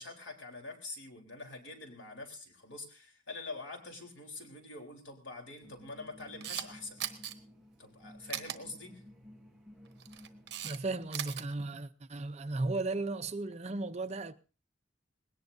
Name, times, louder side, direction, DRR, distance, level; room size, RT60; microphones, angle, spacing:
voice 1, 0.0-7.0 7.8-9.0, left 3 dB, 85° left, 3.8 m, -45 dB
sound 1, 5.6-10.7, left 1 dB, 5° right, 1.1 m, -55 dB
Camera, 6.2-6.7 7.0-7.3 8.3-8.6 9.9-10.8 11.0-11.4, right 10 dB, 60° right, 1.2 m, -38 dB
voice 2, 10.6-14.3, right 2 dB, 35° right, 0.7 m, -35 dB
20.0 x 18.0 x 2.7 m
head